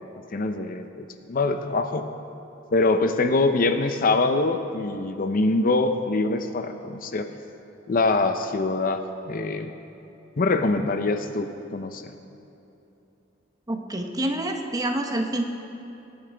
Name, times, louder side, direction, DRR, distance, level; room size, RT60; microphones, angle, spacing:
voice 1, 0.3-2.1 2.7-7.3 7.9-9.0 9.3-9.7 10.4-12.1, left 3 dB, 45° left, 8 dB, 0.6 m, -24 dB
voice 2, 13.7-15.4, right 1 dB, 20° right, 4 dB, 0.9 m, -27 dB
22.5 x 8.9 x 3.4 m, 2.9 s
head